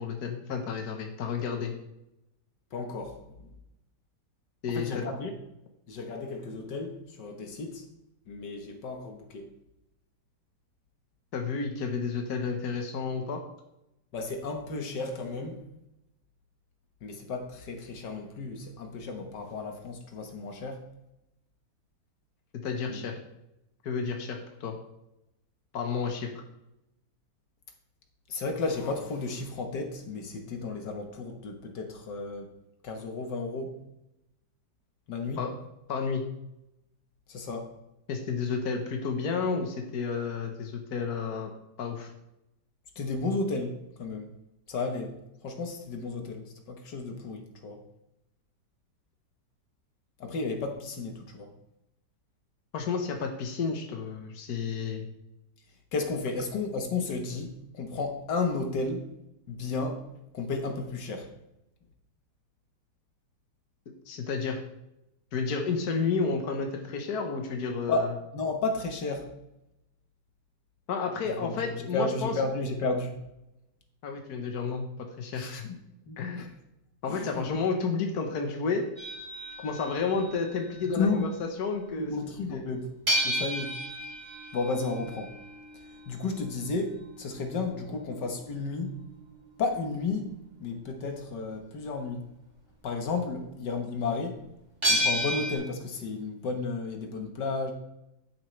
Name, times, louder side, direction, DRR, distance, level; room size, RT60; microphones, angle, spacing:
voice 1, 0.0-1.7 4.6-5.1 11.3-13.4 22.6-23.2 23.8-24.8 25.7-26.4 35.4-35.5 35.9-36.2 38.1-41.5 41.8-42.1 52.7-55.1 64.1-64.6 65.3-68.1 70.9-72.3 74.0-75.7 76.2-76.5 77.0-78.8 79.6-81.3 81.6-82.1 82.5-82.6, left 5 dB, 65° left, 3 dB, 1.7 m, -31 dB
voice 2, 2.7-3.5 4.7-5.3 5.9-7.8 8.3-9.5 14.1-15.6 17.0-20.9 22.9-23.1 28.3-32.5 32.8-33.8 35.1-35.4 37.3-37.7 43.0-44.3 44.7-45.2 45.4-47.8 50.2-51.5 55.9-59.1 59.5-60.1 60.3-61.3 67.9-69.3 71.2-73.2 75.4-75.8 76.1-76.5 77.1-77.5 80.8-81.3 82.0-82.9 83.2-83.8 84.5-85.3 86.1-89.0 89.6-90.3 90.6-92.2 92.8-94.4 94.9-97.7, left 3 dB, 85° left, 3 dB, 2.0 m, -33 dB
sound 1, 79.0-81.2 83.1-89.7 94.8-95.6, equal, 25° right, 3.7 m, -33 dB
10.5 x 9.6 x 3.3 m, 0.87 s
omnidirectional pair, 1.8 m